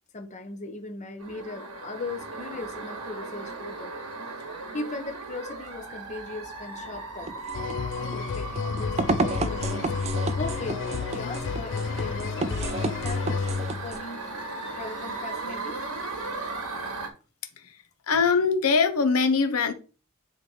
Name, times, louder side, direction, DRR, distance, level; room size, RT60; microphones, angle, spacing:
voice 1, 0.1-3.9 4.4-4.5 4.7-7.5 8.0-14.3 14.8-15.8, left 3 dB, 35° left, 0.9 m, -38 dB
sound 1, 1.2-17.1, right 3 dB, 75° right, 1.4 m, -37 dB
sound 2, 7.3-14.0, right 3 dB, 30° right, 0.5 m, -32 dB
sound 3, 7.5-14.1 14.9-16.2 16.4-16.5, left 5 dB, 55° left, 0.4 m, -31 dB
voice 2, 18.1-19.7, left 5 dB, 75° left, 0.9 m, -22 dB
9.7 x 3.4 x 4.4 m
head